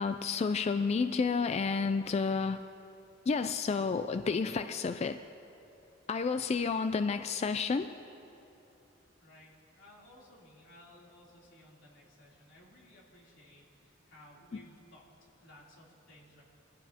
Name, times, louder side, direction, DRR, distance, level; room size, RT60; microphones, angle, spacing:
voice 1, 0.0-2.6 3.3-5.2 6.1-7.9, left 5 dB, 35° left, 9 dB, 0.3 m, -30 dB
voice 2, 9.2-16.4, left 1 dB, 85° left, -4 dB, 3.2 m, -58 dB
24.5 x 15.0 x 2.9 m, 3.0 s
head